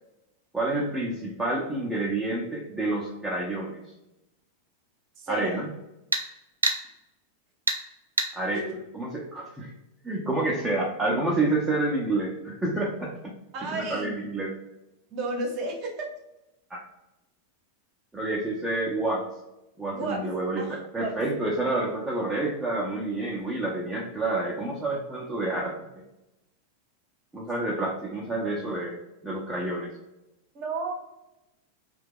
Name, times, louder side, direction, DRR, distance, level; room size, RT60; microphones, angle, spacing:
voice 1, 0.5-3.8 5.3-5.7 8.3-8.6 8.9-9.7 10.0-13.3 13.7-14.5 16.7-16.8 18.1-19.2 19.8-25.9 27.3-29.9, right 2 dB, 10° right, -4 dB, 0.6 m, -29 dB
sound 1, 1.7-1.8 6.1-6.3 6.6-6.8 7.7-7.8 8.2-8.3, right 3 dB, 75° right, 0.4 m, -25 dB
voice 2, 5.2-5.6 8.5-8.7 13.5-14.1 15.1-16.1 19.9-20.2 20.6-21.1 30.5-30.9, right 3 dB, 40° right, 1 dB, 0.8 m, -32 dB
2.8 x 2.2 x 3.6 m, 0.94 s
figure-of-eight pair, 90°, 0 cm